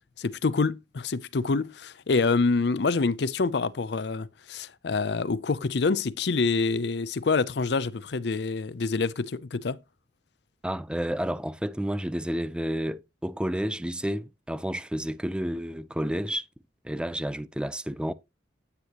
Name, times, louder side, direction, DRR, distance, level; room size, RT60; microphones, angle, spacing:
voice 1, 0.2-9.8, left 4 dB, 65° left, 0.5 m, -26 dB
voice 2, 10.6-16.4 16.8-18.1, equal, 5° right, 0.5 m, -30 dB
9.7 x 9.3 x 2.9 m
head